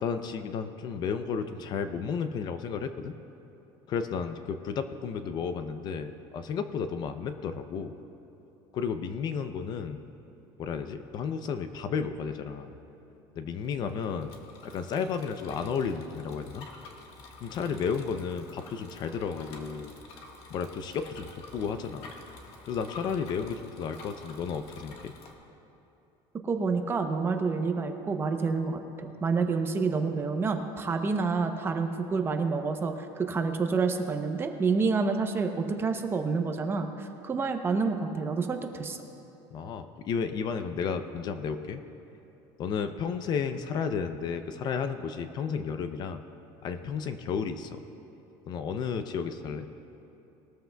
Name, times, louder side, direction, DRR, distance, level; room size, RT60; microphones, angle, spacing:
voice 1, 0.0-3.2 3.9-7.9 8.7-10.0 10.6-12.7 13.4-14.3 14.6-16.7 17.4-19.9 20.5-22.1 22.7-25.1 39.5-41.8 42.6-46.2 46.6-47.8 48.5-49.7, left 6 dB, 35° left, 9 dB, 0.5 m, -33 dB
Bicycle, 13.6-25.3, left 3 dB, 55° left, 1.5 m, -49 dB
voice 2, 26.4-39.0, right 4 dB, 20° right, 6 dB, 0.7 m, -28 dB
20.5 x 13.5 x 2.3 m, 2.9 s
cardioid pair, 160°, 12 cm